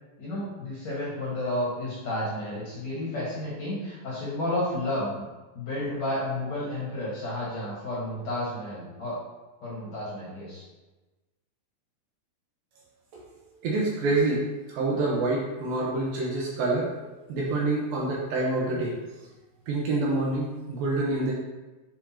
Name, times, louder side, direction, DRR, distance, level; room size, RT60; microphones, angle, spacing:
voice 1, 0.2-9.2 9.6-10.6 18.6-18.8, left 1 dB, 55° left, -8 dB, 2.0 m, -32 dB
voice 2, 13.6-16.9 17.3-18.9 19.7-21.3, right 2 dB, 75° right, -3 dB, 2.4 m, -27 dB
7.6 x 4.7 x 2.8 m, 1.1 s
omnidirectional pair, 4.7 m